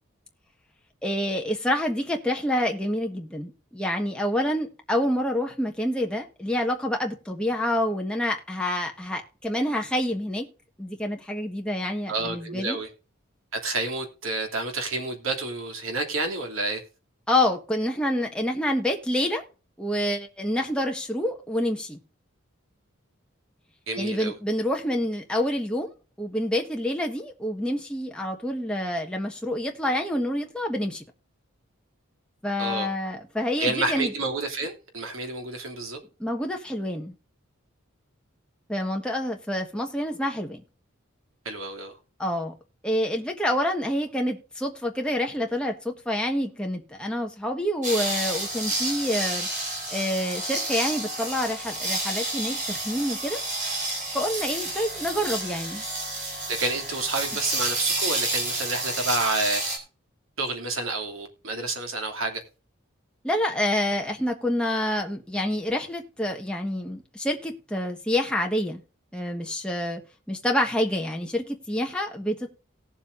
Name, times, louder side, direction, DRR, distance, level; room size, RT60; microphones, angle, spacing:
voice 1, 1.0-10.5 10.8-12.8 17.3-19.4 19.8-22.0 24.0-25.9 26.2-31.0 32.4-34.1 36.2-37.1 38.7-40.6 42.2-42.5 42.8-49.5 49.9-53.4 54.1-55.8 63.2-68.8 69.1-70.0 70.3-72.5, left 1 dB, 5° left, 1.4 m, -27 dB
voice 2, 12.1-12.9 13.6-16.8 23.9-24.4 32.6-32.9 33.6-36.0 41.4-41.9 56.5-59.6 60.4-62.4, right 3 dB, 85° right, 2.8 m, -29 dB
sound 1, 47.8-59.8, right 2 dB, 40° right, 3.6 m, -30 dB
18.5 x 7.4 x 2.6 m
head